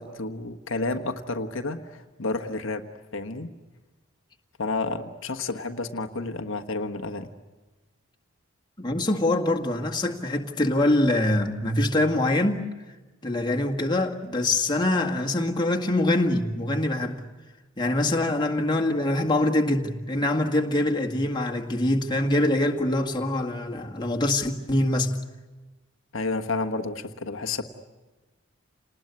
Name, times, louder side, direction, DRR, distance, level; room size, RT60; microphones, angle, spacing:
voice 1, 0.0-2.8 3.1-3.5 4.6-7.3 26.1-27.6, left 3 dB, 70° left, 1.3 m, -30 dB
voice 2, 8.8-12.7 13.2-17.2 17.8-25.1, left 1 dB, 20° left, 1.9 m, -24 dB
28.5 x 20.0 x 9.7 m
head